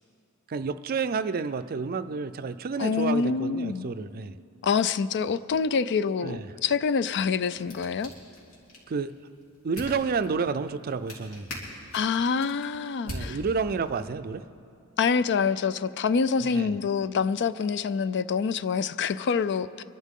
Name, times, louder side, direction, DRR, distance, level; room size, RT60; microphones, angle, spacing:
voice 1, 0.5-4.3 6.2-6.4 8.9-9.1 9.6-11.5 13.1-14.4 16.4-16.7, right 5 dB, 45° right, 12 dB, 0.4 m, -30 dB
voice 2, 2.8-3.9 4.6-8.1 11.9-13.4 15.0-19.8, left 5 dB, 55° left, 15 dB, 0.4 m, -26 dB
sound 1, 6.9-14.0, equal, 85° left, 3.0 m, -43 dB
24.5 x 12.0 x 3.7 m, 2.6 s
head